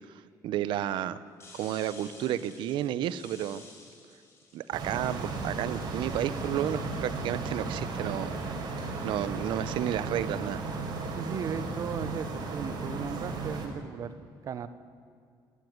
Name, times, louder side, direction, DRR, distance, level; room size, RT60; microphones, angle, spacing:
voice 1, 0.4-1.2 1.5-3.6 4.5-8.4 9.0-10.6, right 11 dB, 80° right, 15 dB, 0.9 m, -31 dB
sound 1, 1.4-6.7, left 3 dB, 35° left, 5.5 m, -53 dB
sound 2, 4.7-13.7, right 3 dB, 60° right, 4.5 m, -35 dB
voice 2, 11.1-14.1 14.4-14.7, right 7 dB, 45° right, 13 dB, 1.1 m, -36 dB
28.0 x 13.0 x 9.6 m, 2.3 s
cardioid pair, 165°, 8 cm